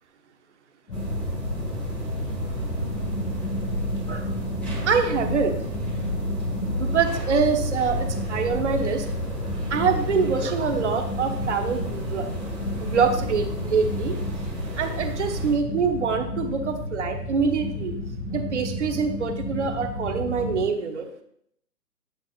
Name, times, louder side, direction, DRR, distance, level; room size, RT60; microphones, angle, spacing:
sound 1, 0.9-20.6, left 1 dB, 60° left, 1.9 m, -32 dB
sound 2, 0.9-15.5, right 1 dB, ahead, 1.6 m, -32 dB
voice 1, 4.9-5.6 6.8-9.0 9.7-12.3 12.8-14.2 14.8-17.9 18.3-21.1, right 5 dB, 45° right, 5 dB, 1.0 m, -25 dB
8.9 x 5.8 x 2.5 m, 0.68 s
figure-of-eight pair, 140°, 48 cm